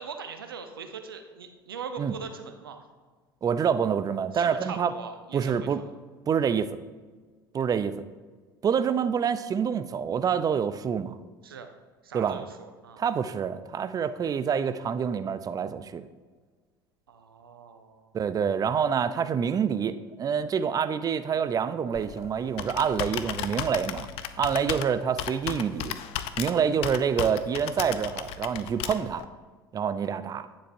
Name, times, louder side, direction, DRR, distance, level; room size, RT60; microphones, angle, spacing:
voice 1, 0.0-2.9 4.3-5.9 11.4-11.7 12.0-13.0 17.1-18.1, right 5 dB, 85° right, 7 dB, 0.7 m, -41 dB
voice 2, 3.4-4.9 5.3-5.8 6.3-6.7 7.5-7.9 8.6-11.1 12.1-12.4 13.0-16.0 18.1-24.1 24.4-25.9 26.4-29.2 29.7-30.5, right 7 dB, 30° right, 12 dB, 0.5 m, -27 dB
Computer keyboard, 21.9-29.2, left 11 dB, 55° left, 0.5 m, -35 dB
9.3 x 7.4 x 2.6 m, 1.4 s
hypercardioid pair, 70°, 12 cm